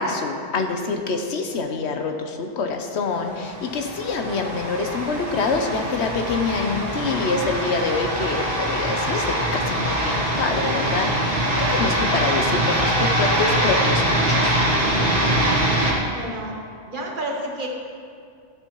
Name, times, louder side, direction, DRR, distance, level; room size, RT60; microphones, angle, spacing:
voice 1, 0.0-14.6, left 4 dB, 70° left, 4 dB, 1.0 m, -26 dB
sound 1, 3.4-15.9, right 1 dB, 80° right, 2.1 m, -23 dB
voice 2, 16.1-16.6 16.9-17.7, right 1 dB, 50° right, 0 dB, 1.2 m, -30 dB
13.5 x 7.1 x 3.0 m, 2.2 s
omnidirectional pair, 1.2 m